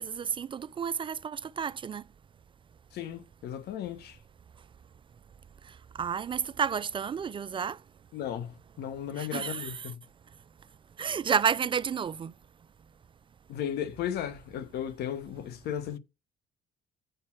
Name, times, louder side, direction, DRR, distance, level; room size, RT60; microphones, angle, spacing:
voice 1, 0.0-2.1 5.6-7.8 9.2-9.9 11.0-12.3, right 7 dB, 30° right, 0.4 m, -31 dB
voice 2, 2.9-4.2 8.1-10.0 13.5-16.0, left 10 dB, 75° left, 1.2 m, -35 dB
8.0 x 5.4 x 5.8 m
cardioid pair, 110°, 17 cm